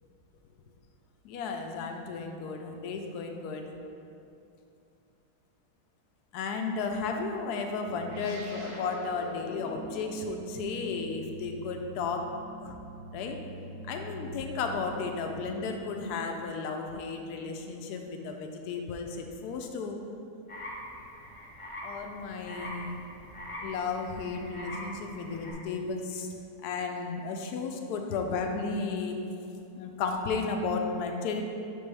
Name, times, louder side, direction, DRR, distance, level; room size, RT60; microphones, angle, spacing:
voice 1, 1.2-3.7 6.3-12.2 12.6-12.7 13.1-13.4 13.9-20.0 21.8-23.0 23.6-26.3 26.6-29.2 29.7-31.4, left 4 dB, 80° left, 3 dB, 1.1 m, -34 dB
sound 1, 7.9-16.7, right 1 dB, 75° right, 1.3 m, -44 dB
sound 2, 20.5-25.5, left 1 dB, 30° left, 0.6 m, -43 dB
6.2 x 5.2 x 3.3 m, 2.7 s
omnidirectional pair, 1.7 m